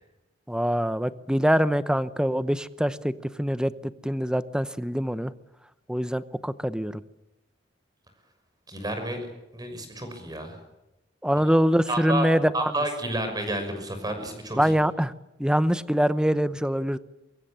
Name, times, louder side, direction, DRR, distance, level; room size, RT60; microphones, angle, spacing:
voice 1, 0.5-3.1 3.4-5.3 5.9-7.0 11.2-12.7 14.6-15.1 15.4-17.0, equal, 5° right, 14 dB, 0.8 m, -24 dB
voice 2, 8.7-9.2 9.5-10.6 11.5-11.6 11.9-14.6, right 1 dB, 20° right, 7 dB, 6.1 m, -30 dB
23.5 x 23.0 x 8.8 m, 0.92 s
head